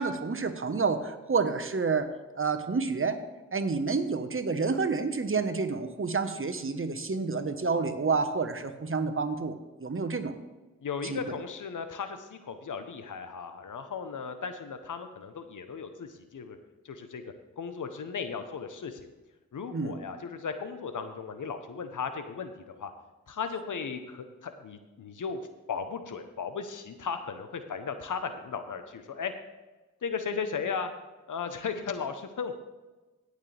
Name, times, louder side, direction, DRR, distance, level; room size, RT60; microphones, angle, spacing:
voice 1, 0.0-2.1 2.4-3.2 3.5-10.3 11.0-11.2 19.7-20.0, right 4 dB, 40° right, 7 dB, 1.2 m, -29 dB
voice 2, 10.8-16.6 16.8-17.2 17.6-19.1 19.5-22.9 23.3-25.4 25.7-29.3 30.0-30.9 31.3-32.6, left 6 dB, 70° left, 9 dB, 1.0 m, -36 dB
17.0 x 6.6 x 3.4 m, 1.2 s
cardioid pair, 40°, 32 cm